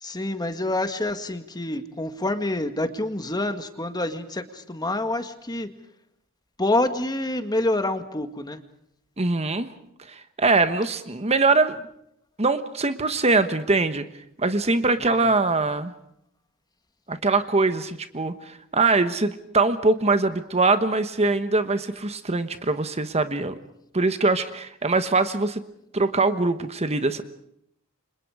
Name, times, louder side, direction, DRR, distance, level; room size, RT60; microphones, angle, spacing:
voice 1, 0.0-5.7 6.6-8.6 15.0-15.1, left 2 dB, 20° left, 8 dB, 1.8 m, -27 dB
voice 2, 9.2-9.7 10.0-11.8 12.4-14.0 14.4-15.9 17.1-23.5 23.9-25.6 25.9-27.2, right 3 dB, 30° right, 10 dB, 1.2 m, -22 dB
30.0 x 26.5 x 4.9 m, 0.73 s
head